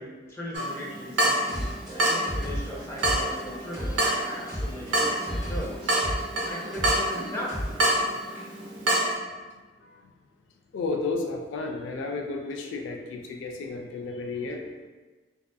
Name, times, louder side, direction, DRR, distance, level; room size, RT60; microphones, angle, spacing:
voice 1, 0.0-5.9 6.4-7.6, equal, 15° left, -6 dB, 0.5 m, -38 dB
Water tap faucet / Drip, 0.5-9.1, right 1 dB, 85° right, 0.6 m, -28 dB
sound 1, 1.4-8.0, equal, ahead, 1.2 m, -35 dB
voice 2, 10.7-14.7, left 3 dB, 85° left, 2 dB, 0.3 m, -32 dB
2.5 x 2.3 x 2.3 m, 1.3 s
head